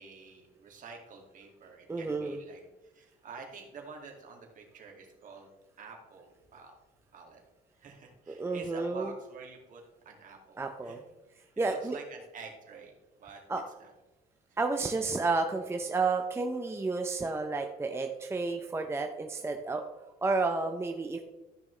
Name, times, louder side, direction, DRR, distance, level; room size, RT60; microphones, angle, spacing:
voice 1, 0.0-5.5 5.8-6.7 7.1-7.4 7.7-11.0 11.3-13.4 13.8-13.9 14.5-14.6, right 4 dB, 50° right, 1 dB, 2.3 m, -49 dB
voice 2, 1.9-2.4 8.3-9.1 10.6-11.0 11.6-12.0 13.5-13.6 14.6-19.8 20.2-21.2, right 3 dB, 15° right, 4 dB, 0.6 m, -31 dB
13.5 x 6.0 x 3.2 m, 1.1 s
cardioid pair, 110°, 17 cm